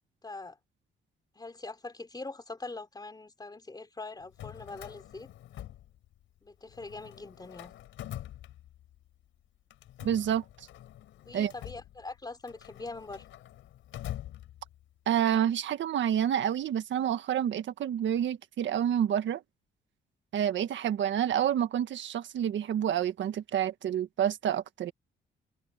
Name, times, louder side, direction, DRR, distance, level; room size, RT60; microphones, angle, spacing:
voice 1, 0.2-0.6 1.4-5.3 6.4-7.7 11.3-13.2, left 3 dB, 20° left, 3.8 m, -43 dB
Drawer open or close, 4.2-6.4 6.7-9.1 9.7-15.0, left 13 dB, 85° left, 4.4 m, -45 dB
voice 2, 10.0-10.7 11.3-11.5 15.0-19.4 20.3-24.9, right 10 dB, 70° right, 1.7 m, -28 dB
cardioid pair, 90°, 20 cm